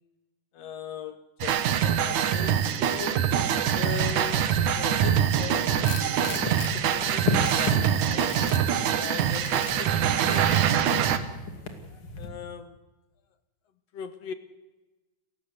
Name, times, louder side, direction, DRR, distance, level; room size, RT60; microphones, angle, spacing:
voice 1, 0.5-3.2 3.8-6.1 6.5-8.4 8.9-11.1 12.2-12.8 13.9-14.3, left 7 dB, 60° left, 2.2 m, -40 dB
sound 1, 1.4-11.2, right 9 dB, 80° right, 2.7 m, -24 dB
sound 2, 3.9-12.3, left 3 dB, 45° left, 3.2 m, -36 dB
Tools, 5.8-6.7 7.2-7.8 8.3-8.6 9.3-9.8 10.3-10.7, left 7 dB, 85° left, 3.5 m, -40 dB
29.5 x 15.5 x 8.2 m
omnidirectional pair, 3.4 m